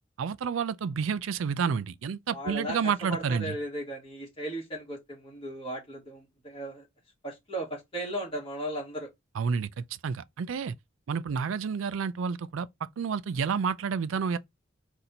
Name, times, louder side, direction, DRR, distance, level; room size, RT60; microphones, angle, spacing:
voice 1, 0.2-3.6 9.4-10.7 11.1-12.7 13.0-14.4, right 6 dB, 85° right, 0.4 m, -30 dB
voice 2, 2.3-6.9 7.2-9.1, right 1 dB, 30° left, 2.1 m, -36 dB
3.9 x 2.6 x 4.2 m
head